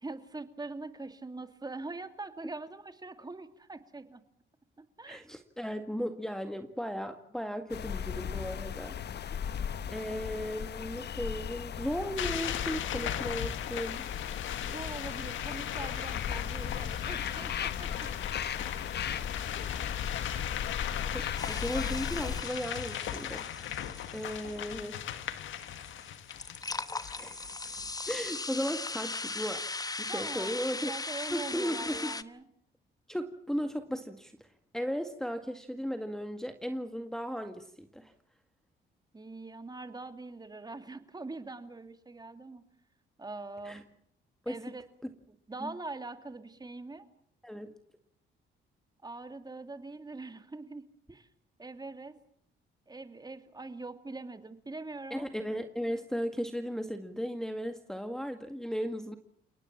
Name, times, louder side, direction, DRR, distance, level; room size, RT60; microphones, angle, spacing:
voice 1, 0.0-4.2 4.8-5.2 14.6-18.1 18.6-18.8 30.1-30.5 30.9-32.4 39.1-42.6 43.2-43.8 44.5-44.8 45.3-47.1 49.0-51.3 51.6-52.1 52.9-55.3, right 3 dB, 20° right, 8 dB, 2.6 m, -43 dB
voice 2, 5.1-9.0 9.9-14.0 21.1-23.5 24.1-25.0 27.2-27.4 28.1-29.6 30.0-30.9 31.3-32.1 33.1-34.3 34.7-38.1 43.6-43.8 44.5-44.6 45.6-45.7 47.4-47.7 55.1-59.1, equal, 5° left, 6 dB, 1.9 m, -36 dB
sound 1, 7.7-22.4, left 8 dB, 55° left, 1.1 m, -37 dB
sound 2, 12.2-28.1, left 10 dB, 80° left, 1.8 m, -38 dB
sound 3, 21.4-32.2, left 3 dB, 20° left, 1.1 m, -39 dB
30.0 x 18.5 x 7.4 m, 0.66 s
cardioid pair, 90°, 20 cm